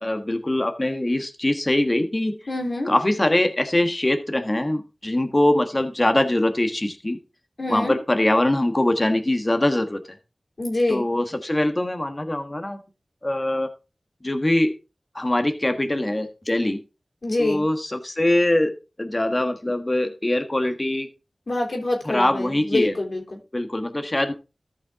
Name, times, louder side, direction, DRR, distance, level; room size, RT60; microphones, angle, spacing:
voice 1, 0.0-2.4 2.9-7.2 7.7-10.0 10.9-12.8 13.2-13.7 14.2-14.7 15.1-16.8 17.4-21.1 22.0-22.9 23.5-24.3, left 1 dB, 35° left, 1.4 m, -22 dB
voice 2, 2.5-2.9 7.6-8.0 10.6-11.0 17.2-17.7 21.5-23.4, left 2 dB, 65° left, 3.0 m, -25 dB
14.0 x 5.6 x 3.6 m
cardioid pair, 40°, 0 cm